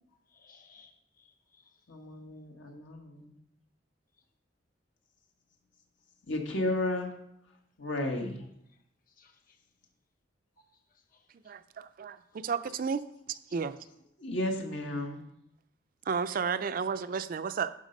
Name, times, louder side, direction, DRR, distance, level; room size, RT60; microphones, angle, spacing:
voice 1, 0.3-1.7 9.2-9.6 11.1-11.2 13.5-13.6, left 5 dB, 45° left, 4 dB, 1.4 m, -61 dB
voice 2, 1.9-3.4 6.2-7.1 7.8-8.5 13.9-15.3, left 1 dB, 80° left, 2 dB, 1.6 m, -34 dB
voice 3, 11.4-13.0 13.3-13.8 16.1-17.7, right 6 dB, 50° right, 12 dB, 0.4 m, -32 dB
10.5 x 5.6 x 5.3 m, 0.78 s
head